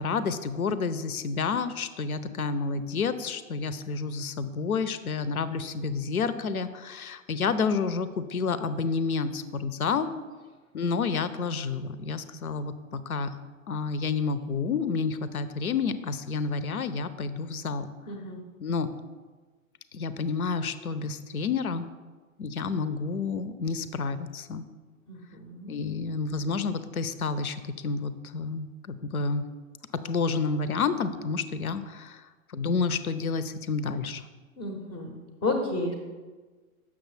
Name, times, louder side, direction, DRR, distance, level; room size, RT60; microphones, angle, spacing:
voice 1, 0.0-10.1 10.7-13.3 13.7-17.9 18.6-18.9 19.9-21.9 22.4-24.7 25.7-29.5 30.0-34.2, left 5 dB, 85° left, 13 dB, 0.5 m, -29 dB
voice 2, 18.1-18.4 25.1-25.8 34.6-35.9, left 2 dB, 10° left, 2 dB, 0.4 m, -32 dB
7.0 x 6.1 x 3.1 m, 1.4 s
figure-of-eight pair, 110°, 42 cm